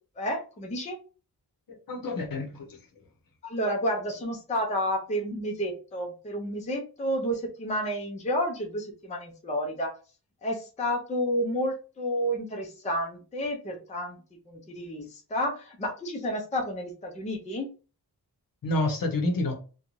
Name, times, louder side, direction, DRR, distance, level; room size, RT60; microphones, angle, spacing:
voice 1, 0.2-1.0 3.4-9.9 10.4-14.2 14.5-17.7, equal, 20° left, 0.4 m, -30 dB
voice 2, 1.7-2.8 18.6-19.6, left 1 dB, 60° left, 0.7 m, -29 dB
2.5 x 2.2 x 3.0 m
wide cardioid pair, 165°, 39 cm